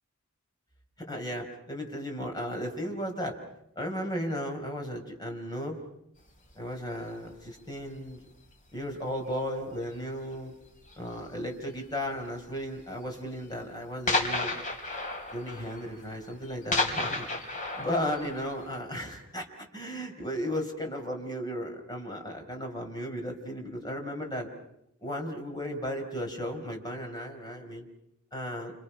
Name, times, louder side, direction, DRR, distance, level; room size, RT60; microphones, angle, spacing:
voice 1, 1.1-3.4 3.8-5.8 6.6-8.2 8.7-10.5 11.0-14.5 15.3-17.3 17.7-19.5 19.7-24.5 25.0-27.9 28.3-28.7, equal, 20° left, 2 dB, 4.7 m, -35 dB
sound 1, 6.4-6.6 7.4-7.8 8.1-8.5 8.9-9.1 9.6-9.7 9.9-10.0 10.9-11.3 12.1-12.2 12.6-12.7 13.1-13.2 13.4-13.5 14.1-18.8, left 2 dB, 40° left, 3.5 m, -32 dB
29.5 x 28.0 x 5.8 m, 0.78 s
head